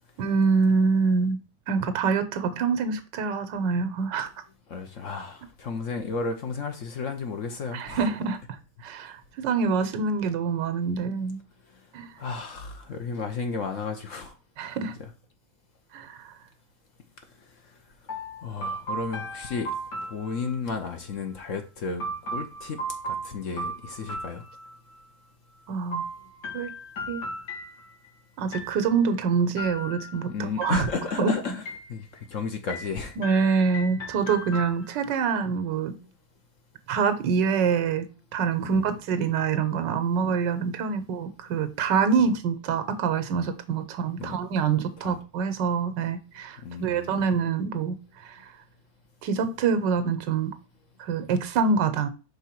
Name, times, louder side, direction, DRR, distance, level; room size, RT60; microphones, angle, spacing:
voice 1, 0.2-1.4 1.7-4.3 7.7-8.4 8.8-11.4 11.9-12.1 14.6-14.9 15.9-16.3 25.7-26.1 26.5-26.7 27.1-27.2 28.4-30.9 31.2-31.4 33.2-35.9 36.9-48.4 49.2-50.5 51.0-52.1, right 5 dB, 80° right, 1.5 m, -25 dB
voice 2, 4.7-8.0 12.2-14.3 18.4-19.7 20.1-22.0 22.3-22.8 23.1-24.4 30.3-31.6 31.9-33.1 38.6-38.9 42.2-42.3 44.2-44.4 45.0-45.2 46.6-47.1, left 4 dB, 55° left, 1.0 m, -33 dB
sound 1, 18.1-20.8 22.0-25.0 25.9-28.1 28.5-29.1 29.6-30.2 30.6-31.2 31.7-32.3 32.7-35.2, right 1 dB, 75° left, 2.4 m, -36 dB
5.5 x 3.7 x 5.8 m
omnidirectional pair, 1.9 m